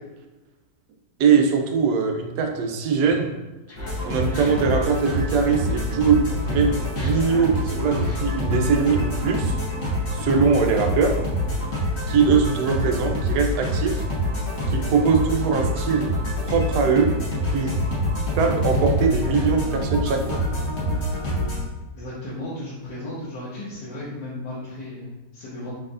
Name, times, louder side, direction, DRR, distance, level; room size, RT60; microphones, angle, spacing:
voice 1, 1.2-3.3 4.0-9.5 10.1-11.2 12.1-14.0 14.7-16.1 16.4-17.1 17.5-17.8 18.3-20.4, right 5 dB, 70° right, 3 dB, 1.1 m, -21 dB
Laughter, 3.7-5.9 6.2-9.5, left 1 dB, 20° left, 0.4 m, -43 dB
sound 1, 3.8-21.6, equal, 45° left, 1.6 m, -26 dB
voice 2, 21.9-25.7, left 1 dB, 75° left, -10 dB, 1.8 m, -35 dB
4.4 x 4.2 x 2.5 m, 1.1 s
omnidirectional pair, 1.9 m